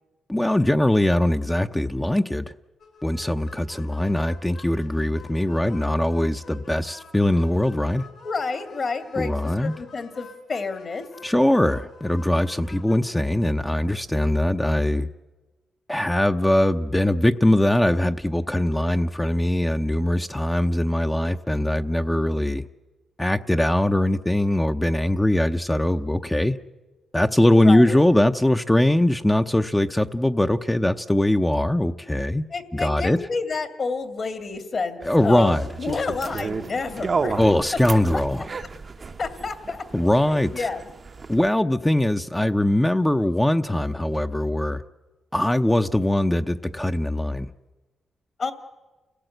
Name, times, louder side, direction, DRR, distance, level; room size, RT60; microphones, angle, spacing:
voice 1, 0.3-2.4 3.0-8.1 9.2-9.7 11.2-15.1 15.9-22.7 23.2-26.6 27.1-32.4 32.7-33.2 35.0-35.7 37.4-38.5 39.9-40.7 41.3-44.8 45.3-47.5, left 1 dB, 10° left, 6 dB, 0.7 m, -21 dB
sound 1, 2.8-13.0, left 5 dB, 70° left, 5.5 m, -48 dB
voice 2, 8.2-9.3 9.6-11.0 27.6-28.1 32.5-37.4 39.2-39.9 40.2-40.9 48.4-48.5, left 4 dB, 50° left, 8 dB, 2.5 m, -29 dB
sound 2, 35.0-41.5, right 4 dB, 45° right, 0.8 m, -32 dB
29.0 x 16.5 x 8.0 m, 1.2 s
cardioid pair, 70°, 0 cm